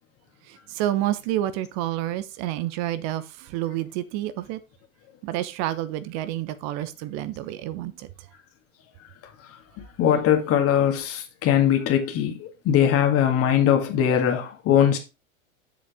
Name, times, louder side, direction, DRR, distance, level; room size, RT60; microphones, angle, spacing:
voice 1, 0.5-4.6 5.2-8.1, right 13 dB, 40° right, 0.9 m, -29 dB
voice 2, 10.0-15.0, left 9 dB, 35° left, 2.0 m, -21 dB
7.4 x 7.2 x 3.6 m
figure-of-eight pair, 95°, 41 cm